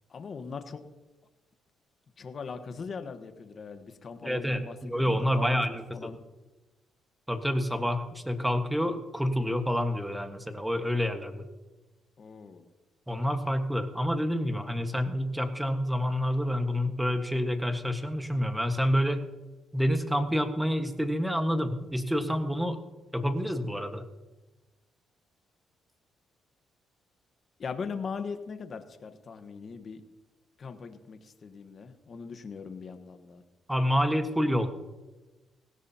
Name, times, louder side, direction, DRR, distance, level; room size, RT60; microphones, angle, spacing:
voice 1, 0.1-0.8 2.2-5.6 5.9-6.2 12.2-12.6 27.6-30.0 30.6-33.4, left 5 dB, 45° left, 8 dB, 1.3 m, -40 dB
voice 2, 4.2-5.8 7.3-11.5 13.1-19.2 19.7-22.8 23.1-24.0 33.7-34.7, equal, 5° right, 7 dB, 1.5 m, -28 dB
18.0 x 16.5 x 2.9 m, 1.1 s
cardioid pair, 90°, 0 cm